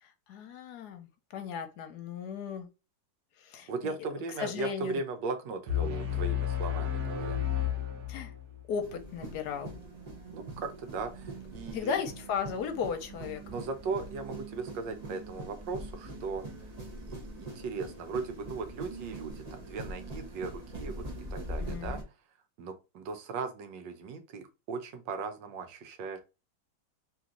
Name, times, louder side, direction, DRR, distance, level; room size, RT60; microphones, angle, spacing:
voice 1, 0.0-2.7 3.4-3.9 4.4-5.0 5.8-6.2 8.1-8.3 8.7-9.7 11.7-13.4 21.6-22.0, left 7 dB, 70° left, 1.2 m, -36 dB
voice 2, 3.7-7.4 10.3-12.0 13.5-16.4 17.0-21.0 21.3-22.0 22.6-26.2, right 4 dB, 85° right, 1.5 m, -38 dB
sound 1, 5.7-8.6, left 10 dB, 65° right, 1.4 m, -32 dB
sound 2, 8.8-22.0, right 1 dB, 30° right, 0.9 m, -43 dB
3.3 x 3.1 x 3.7 m
omnidirectional pair, 1.9 m